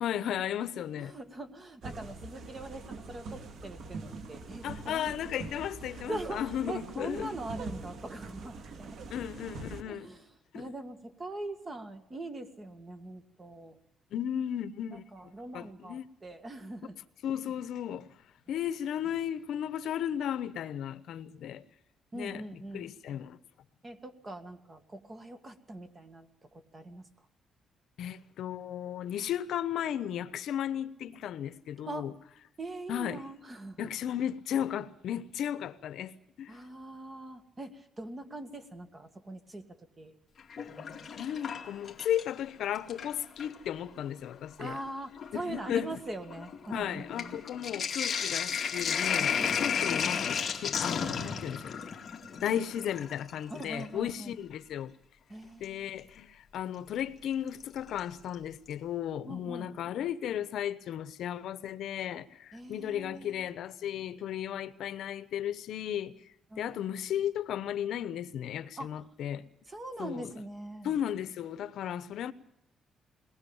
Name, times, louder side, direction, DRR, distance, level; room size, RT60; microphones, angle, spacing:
voice 1, 0.0-1.1 4.6-7.3 9.1-10.1 10.5-10.7 14.1-15.0 15.5-16.0 17.2-18.1 18.5-21.6 22.1-22.4 22.7-23.4 28.0-32.1 32.9-33.2 33.8-36.5 41.2-44.8 45.5-45.9 46.7-51.8 52.3-54.9 55.6-66.1 66.6-69.4 70.0-70.3 70.8-72.3, left 10 dB, 70° left, 1.0 m, -35 dB
voice 2, 0.8-5.5 5.9-9.0 9.8-10.3 10.5-13.8 14.9-17.0 22.1-22.9 23.8-27.1 31.9-32.1 32.6-33.9 36.5-40.2 44.6-47.4 53.5-54.4 55.3-55.9 59.3-59.7 62.5-63.4 66.5-66.7 68.8-68.9 69.7-71.0, right 2 dB, 20° right, 1.9 m, -42 dB
sound 1, 1.8-9.8, right 3 dB, 60° right, 2.0 m, -43 dB
Sink (filling or washing), 40.4-42.4 42.8-43.6 44.4-44.5 44.8-53.9 55.6-55.7 57.5-58.0 58.3-58.4 58.7-58.8, left 7 dB, 35° left, 2.2 m, -33 dB
21.5 x 19.5 x 7.2 m
cardioid pair, 155°, 0 cm